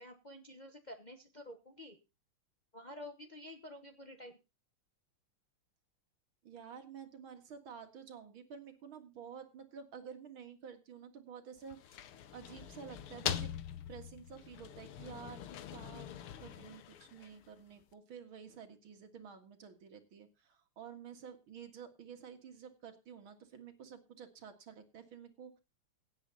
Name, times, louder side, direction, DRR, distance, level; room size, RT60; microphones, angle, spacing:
voice 1, 0.0-2.0 2.7-4.4, left 1 dB, 30° left, 5 dB, 1.0 m, -50 dB
voice 2, 6.4-12.1 12.3-13.5 13.9-16.1 16.4-25.6, right 7 dB, 75° right, 6 dB, 2.7 m, -51 dB
sound 1, 11.6-17.6, left 10 dB, 90° left, 1.9 m, -43 dB
17.0 x 8.2 x 4.0 m, 0.28 s
omnidirectional pair, 2.3 m